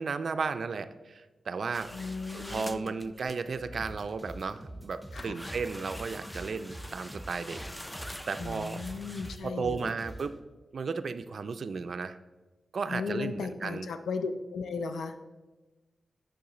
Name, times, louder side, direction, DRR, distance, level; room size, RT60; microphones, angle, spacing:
voice 1, 0.0-1.9 2.3-8.8 9.4-10.4 10.7-12.2 12.7-13.9, right 5 dB, 65° right, 10 dB, 0.3 m, -34 dB
sound 1, 1.6-2.6 3.4-9.4, left 1 dB, 40° left, 1.6 m, -53 dB
sound 2, 1.7-3.4 4.1-4.6 5.2-9.4, equal, 10° left, 0.3 m, -45 dB
voice 2, 1.9-3.0 5.1-5.4 8.4-9.9 12.9-15.2, left 4 dB, 90° left, 9 dB, 0.4 m, -36 dB
sound 3, 3.8-10.3, right 1 dB, 10° right, 0.8 m, -45 dB
6.9 x 5.6 x 3.8 m, 1.2 s
cardioid pair, 65°, 0 cm